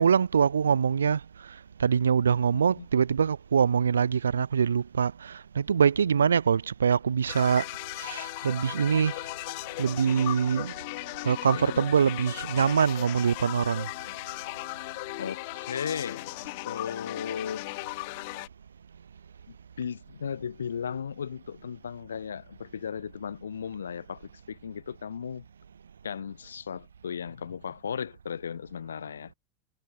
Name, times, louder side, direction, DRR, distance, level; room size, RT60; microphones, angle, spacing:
voice 1, 0.0-7.7 8.0-9.3 9.8-10.7 11.2-13.9, right 7 dB, 80° right, 0.8 m, -24 dB
voice 2, 2.5-2.9 11.5-11.8 14.9-17.7 19.5-25.5 26.0-29.3, left 7 dB, 80° left, 1.5 m, -36 dB
sound 1, 7.3-18.5, left 26 dB, 60° left, 0.6 m, -37 dB
figure-of-eight pair, 80°, 0 cm